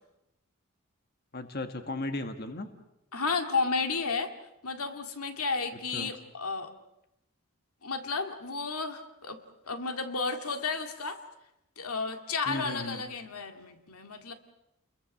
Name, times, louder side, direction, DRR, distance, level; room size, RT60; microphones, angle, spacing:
voice 1, 1.3-2.7 5.9-6.1 12.5-13.0, left 2 dB, 45° left, 7 dB, 1.4 m, -36 dB
voice 2, 3.1-4.3 4.6-6.7 7.8-9.4 9.7-11.2 11.8-14.3, left 4 dB, 85° left, 6 dB, 2.1 m, -32 dB
29.5 x 22.0 x 6.4 m, 0.88 s
head